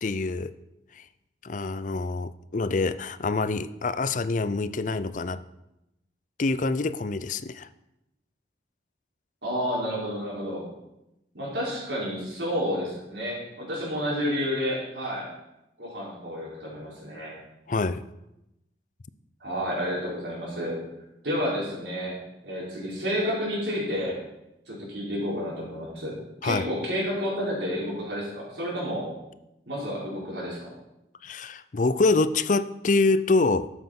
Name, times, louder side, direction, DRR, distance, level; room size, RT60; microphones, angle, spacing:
voice 1, 0.0-0.5 1.0-1.1 1.4-5.4 6.4-7.7 17.7-18.0 26.4-26.7 31.2-33.7, left 3 dB, 45° left, 14 dB, 0.5 m, -25 dB
voice 2, 9.4-10.6 11.3-15.3 15.8-17.3 19.4-20.8 21.2-22.2 22.4-24.2 24.7-26.2 26.4-29.1 29.7-30.7, equal, 70° right, -5 dB, 4.8 m, -30 dB
12.5 x 7.7 x 5.9 m, 0.89 s
head